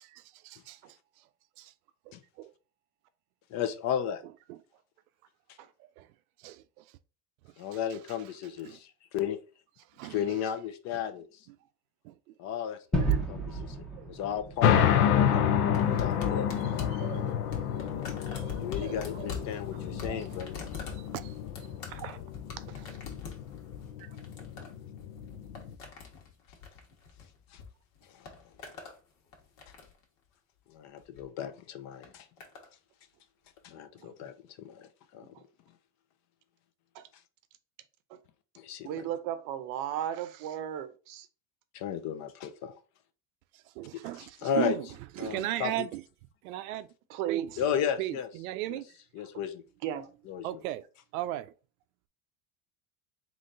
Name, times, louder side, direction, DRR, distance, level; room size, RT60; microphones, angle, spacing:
voice 1, 0.4-0.8 2.4-2.5 4.5-4.6 6.0-6.1 6.4-6.6 8.6-8.8 10.0-10.2 12.0-12.1 14.0-14.1 15.2-15.4 15.6-16.0 16.9-19.4 19.9-20.3 21.1-21.3 43.8-44.9 45.2-46.0 46.4-46.9 47.3-47.5 48.0-48.9 50.4-50.8 51.1-51.5, right 15 dB, 90° right, 0.5 m, -37 dB
voice 2, 3.5-4.2 7.6-9.4 10.0-11.5 12.4-13.8 14.1-14.8 15.3-16.6 18.6-20.6 27.5-27.6 28.1-28.3 30.7-32.3 33.6-35.3 38.6-38.9 41.7-42.7 43.9-44.8 45.2-45.9 47.6-48.3 48.7-48.8 49.1-49.6 50.3-50.6, left 8 dB, 40° left, 0.6 m, -34 dB
Gunshot gunfire / Fireworks / Boom, 12.9-17.7, right 3 dB, ahead, 0.7 m, -34 dB
sound 1, 14.6-25.7, left 9 dB, 90° left, 0.8 m, -29 dB
sound 2, 15.7-27.7 28.0-29.0 29.3-30.0 31.0-31.3 32.0-32.7 33.6-33.7, left 6 dB, 70° left, 1.5 m, -43 dB
voice 3, 38.8-41.3 47.1-47.6 49.8-50.1, right 10 dB, 50° right, 0.7 m, -36 dB
3.8 x 3.2 x 3.8 m
supercardioid pair, 140°, 41 cm